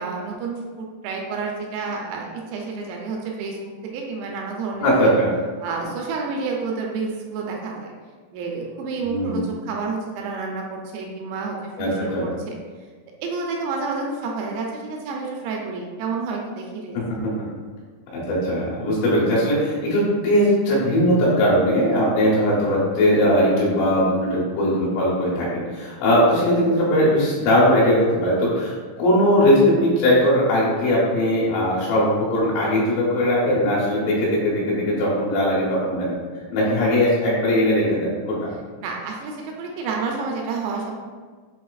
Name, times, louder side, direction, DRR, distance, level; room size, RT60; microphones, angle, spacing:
voice 1, 0.0-5.1 5.6-7.9 8.3-12.6 13.2-17.0 38.8-40.9, right 4 dB, 85° right, 0 dB, 3.1 m, -29 dB
voice 2, 4.8-5.3 9.0-9.4 11.8-12.3 16.9-17.3 18.1-36.1 36.5-38.5, equal, 75° left, -7 dB, 3.3 m, -20 dB
7.4 x 2.8 x 2.4 m, 1.5 s
omnidirectional pair, 6.0 m